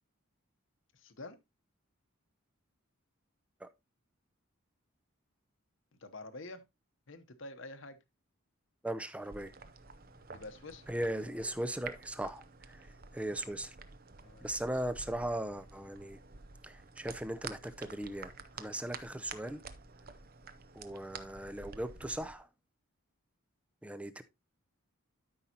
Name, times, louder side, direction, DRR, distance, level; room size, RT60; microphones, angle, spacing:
voice 1, 0.9-1.4 5.9-6.6 7.1-8.0 10.3-10.9 14.2-14.6, left 2 dB, 60° left, 0.9 m, -47 dB
voice 2, 8.8-9.5 10.9-13.8 14.4-16.2 16.6-19.6 20.7-22.5 23.8-24.2, right 1 dB, 5° right, 0.5 m, -38 dB
sound 1, 9.2-22.3, right 5 dB, 40° right, 0.7 m, -50 dB
12.5 x 5.4 x 2.8 m
head